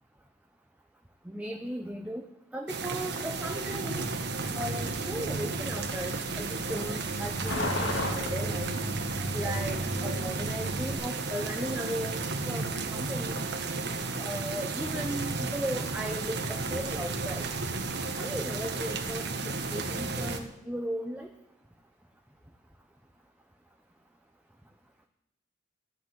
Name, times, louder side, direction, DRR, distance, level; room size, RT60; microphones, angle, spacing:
voice 1, 1.3-2.2 2.5-4.0 4.6-8.7 9.3-12.1 12.5-13.4 14.2-17.4 18.2-19.2 19.7-21.3, right 1 dB, 10° right, 2 dB, 0.9 m, -36 dB
sound 1, 2.7-20.4, right 3 dB, 60° right, 1.4 m, -33 dB
Truck, 3.3-10.9, equal, 85° left, 1.9 m, -36 dB
15.0 x 6.2 x 9.7 m, 0.79 s
head